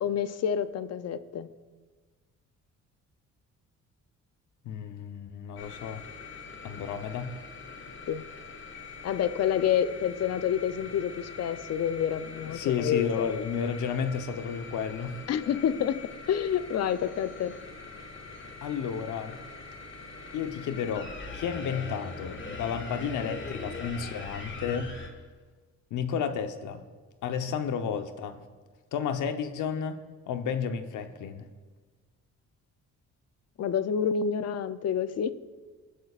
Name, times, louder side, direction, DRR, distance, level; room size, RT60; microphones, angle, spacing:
voice 1, 0.0-1.5 8.1-8.2 9.0-13.1 15.3-17.5 33.6-35.3, left 8 dB, 55° left, 13 dB, 0.6 m, -28 dB
voice 2, 4.6-6.0 6.6-7.3 12.5-15.2 18.6-19.4 20.3-24.9 25.9-26.8 27.2-28.4 28.9-30.0 30.3-31.5, left 7 dB, 80° left, 8 dB, 1.0 m, -32 dB
sound 1, 5.6-25.1, left 4 dB, 40° left, 1.7 m, -43 dB
21.0 x 11.0 x 2.5 m, 1.4 s
cardioid pair, 90°, 30 cm